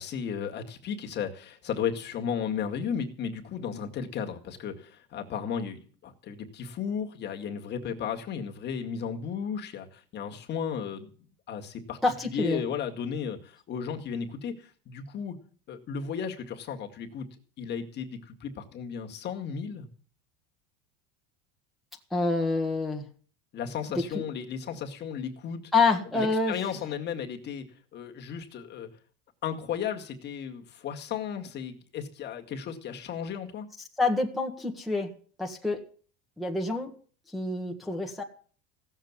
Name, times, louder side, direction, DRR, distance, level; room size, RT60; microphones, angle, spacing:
voice 1, 0.0-11.1 11.5-12.0 12.3-15.3 15.7-19.9 23.5-25.6 26.1-27.6 27.9-28.9 29.4-33.7, left 7 dB, 35° left, 3 dB, 2.1 m, -34 dB
voice 2, 12.0-12.6 22.1-23.0 25.7-26.5 34.0-35.1 35.4-35.8 36.4-36.9 37.3-38.2, left 3 dB, ahead, -1 dB, 1.7 m, -27 dB
16.5 x 7.4 x 9.6 m, 0.43 s
supercardioid pair, 150°, 32 cm